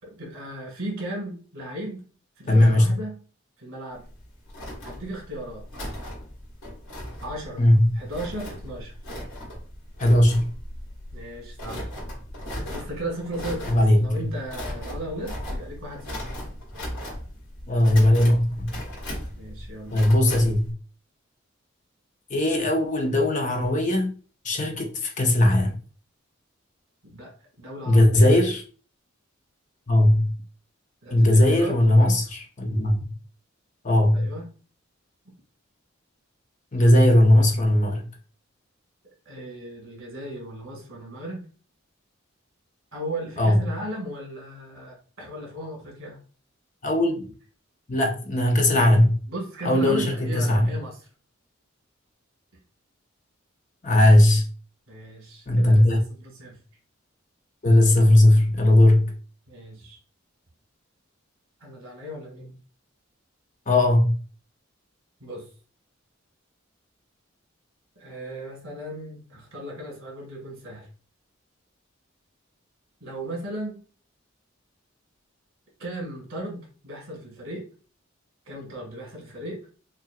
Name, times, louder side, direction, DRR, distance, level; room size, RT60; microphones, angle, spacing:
voice 1, 0.0-2.0 2.4-3.2 3.6-4.1 4.8-5.7 7.2-7.7 7.9-9.0 11.1-11.9 12.6-16.3 19.4-20.0 27.0-27.3 27.6-28.3 31.0-31.7 34.1-34.5 39.3-41.4 42.9-46.2 49.3-51.0 54.9-56.6 59.5-60.0 61.6-62.6 65.2-65.5 68.0-70.9 73.0-73.8 75.8-77.7 78.5-79.6, right 1 dB, 75° right, 2.1 m, -36 dB
voice 2, 2.5-2.9 7.6-7.8 10.0-10.5 13.7-14.1 17.7-18.7 19.9-20.7 22.3-24.1 24.4-25.8 27.9-28.6 29.9-30.3 31.1-33.0 33.8-34.3 36.7-38.1 43.4-43.6 46.8-47.3 47.9-49.1 49.6-50.6 53.8-54.4 55.5-56.0 57.6-59.1 63.7-64.1, left 1 dB, 35° left, 0.7 m, -18 dB
sound 1, 3.9-20.7, left 1 dB, 80° left, 2.2 m, -37 dB
5.7 x 2.6 x 2.4 m
head